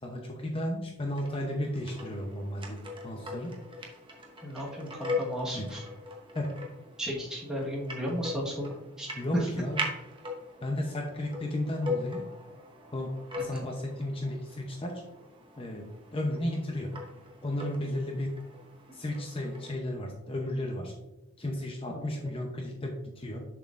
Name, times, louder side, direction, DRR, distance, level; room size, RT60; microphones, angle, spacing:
voice 1, 0.0-3.5 5.5-5.7 6.3-6.5 9.2-9.8 10.6-12.2 12.9-13.1 13.4-15.0 15.6-16.9 17.4-18.3 18.9-20.9 21.4-23.4, left 1 dB, 25° left, 2 dB, 0.6 m, -34 dB
sound 1, 1.2-19.7, left 2 dB, 20° right, 0.8 m, -41 dB
voice 2, 4.4-5.8 7.0-9.5 13.5-13.7 21.9-22.0, equal, 5° right, -5 dB, 1.3 m, -34 dB
7.0 x 6.0 x 2.5 m, 0.99 s
head